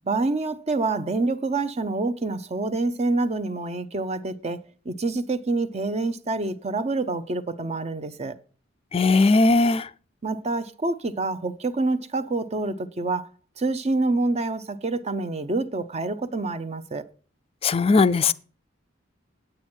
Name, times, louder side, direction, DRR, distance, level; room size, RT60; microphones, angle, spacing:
voice 1, 0.0-8.4 10.2-13.3 13.6-17.1, right 3 dB, 35° right, 0.7 m, -27 dB
voice 2, 8.9-9.9 17.6-18.3, left 3 dB, 30° left, 0.4 m, -18 dB
9.0 x 8.6 x 4.4 m
head